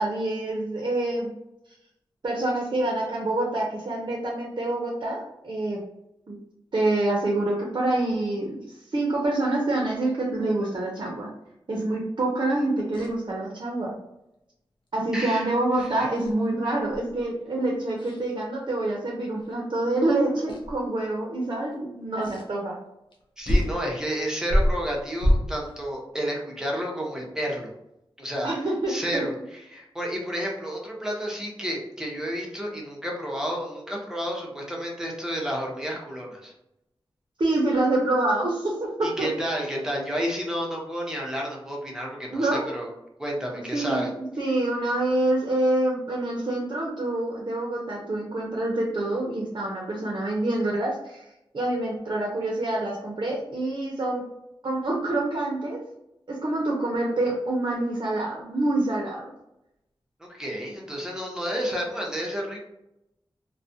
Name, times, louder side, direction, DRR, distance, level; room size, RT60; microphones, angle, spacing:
voice 1, 0.0-1.4 2.2-5.8 6.3-6.4 6.7-8.6 8.9-11.3 11.7-13.9 14.9-22.8 28.4-29.2 37.4-39.3 42.3-42.8 43.7-51.2 51.5-54.2 54.6-55.8 56.3-59.3, right 2 dB, 55° right, -2 dB, 0.6 m, -26 dB
sound 1, 12.9-13.1 15.8-16.5 16.9-17.2 18.0-18.3 19.4-19.5 20.5-20.8 22.2-22.5 23.1-23.2 23.4-23.8 24.4-25.7, equal, 65° left, 0.6 m, -25 dB
voice 2, 15.1-15.5 15.8-15.9 23.4-27.7 28.2-28.5 28.9-29.3 29.7-36.5 39.0-42.9 43.2-44.1 60.2-62.6, equal, 5° right, -2 dB, 0.7 m, -31 dB
2.3 x 2.1 x 2.6 m, 0.86 s
wide cardioid pair, 70°, 9 cm